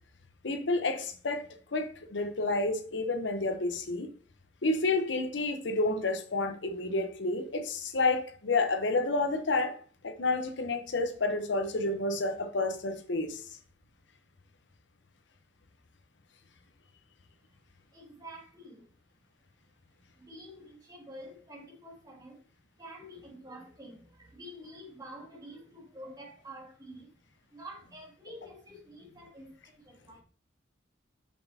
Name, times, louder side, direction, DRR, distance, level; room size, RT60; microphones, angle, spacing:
voice 1, 0.4-4.1 4.6-13.5, left 2 dB, 80° left, 0.9 m, -30 dB
voice 2, 17.9-18.9 20.1-22.4 22.8-27.2 27.5-30.2, equal, 20° right, 2.1 m, -48 dB
7.4 x 6.1 x 2.8 m
head